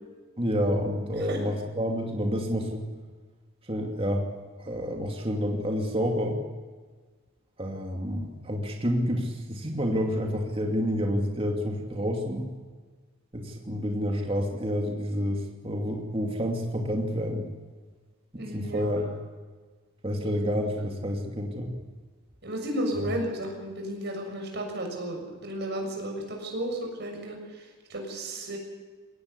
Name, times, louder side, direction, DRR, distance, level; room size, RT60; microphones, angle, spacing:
voice 1, 0.4-2.8 3.7-4.3 4.6-6.4 7.6-12.5 13.3-17.5 18.3-19.1 20.0-21.7, equal, 25° right, 1 dB, 2.6 m, -29 dB
voice 2, 18.3-19.0 20.2-20.3 22.4-28.6, right 1 dB, 50° right, 2 dB, 6.7 m, -33 dB
22.0 x 18.0 x 8.3 m, 1.4 s
head